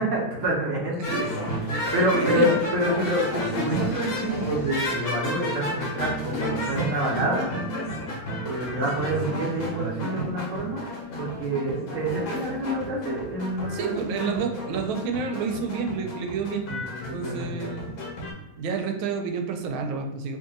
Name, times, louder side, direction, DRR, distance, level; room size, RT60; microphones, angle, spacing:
voice 1, 0.0-7.9 8.4-10.8 11.2-14.3 16.7-17.8, right 1 dB, 55° right, -3 dB, 0.9 m, -28 dB
sound 1, 1.0-18.3, left 1 dB, 55° left, 1.3 m, -32 dB
voice 2, 1.0-1.4 1.7-2.5 13.7-16.7 17.1-17.8 18.6-20.4, right 5 dB, 85° right, 4 dB, 1.4 m, -29 dB
3.2 x 2.7 x 3.7 m, 1.0 s
omnidirectional pair, 2.2 m